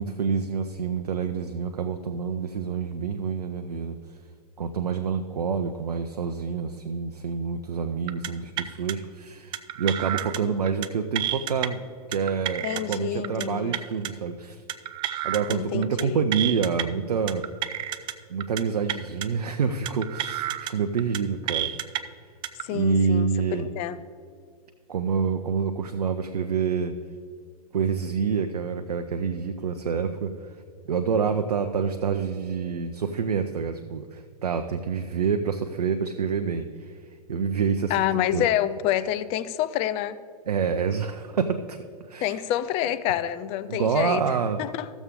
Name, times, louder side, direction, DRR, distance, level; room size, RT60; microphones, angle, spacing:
voice 1, 0.0-4.0 4.6-11.8 12.1-14.6 15.2-17.4 18.3-21.7 22.7-23.7 24.9-26.9 27.7-30.3 30.9-36.9 37.3-38.0 38.3-38.4 40.5-41.8 42.1-42.4 43.7-44.6, right 6 dB, 80° right, 7 dB, 0.6 m, -27 dB
sound 1, 8.1-8.3 8.6-8.9 9.5-10.4 10.7-10.9 11.2-11.7 12.1-13.0 13.2-13.5 13.7-14.1 14.7-15.6 15.8-16.0 16.3-16.8 17.3-18.1 18.4-18.6 18.9-19.3 19.9-20.7 21.0-21.2 21.5-22.0 22.4-22.6, right 12 dB, 25° right, 0.4 m, -30 dB
voice 2, 12.6-13.8 15.5-16.2 22.6-24.0 37.9-40.2 42.2-44.9, left 11 dB, 30° left, 14 dB, 0.5 m, -28 dB
14.0 x 7.2 x 3.6 m, 2.2 s
hypercardioid pair, 115°, 20 cm